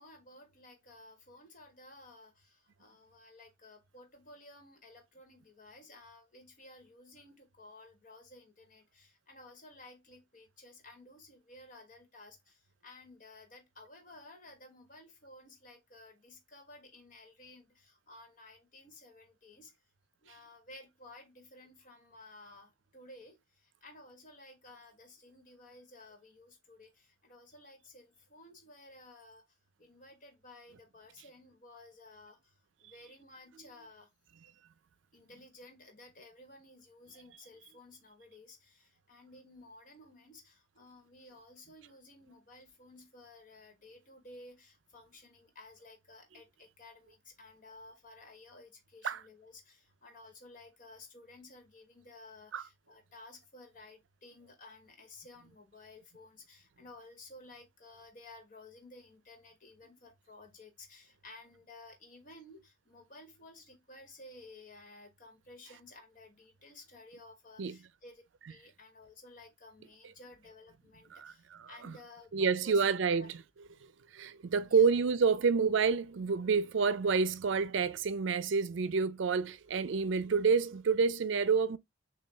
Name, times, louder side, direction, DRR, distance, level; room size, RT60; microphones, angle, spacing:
voice 1, 0.0-19.7 20.2-29.4 29.8-32.5 32.8-34.1 35.1-68.2 68.5-73.3 74.6-74.9, left 2 dB, 45° left, 1.3 m, -55 dB
voice 2, 71.2-71.9 72.3-73.3 74.1-81.8, right 5 dB, 75° right, 0.5 m, -28 dB
6.5 x 2.3 x 3.3 m
head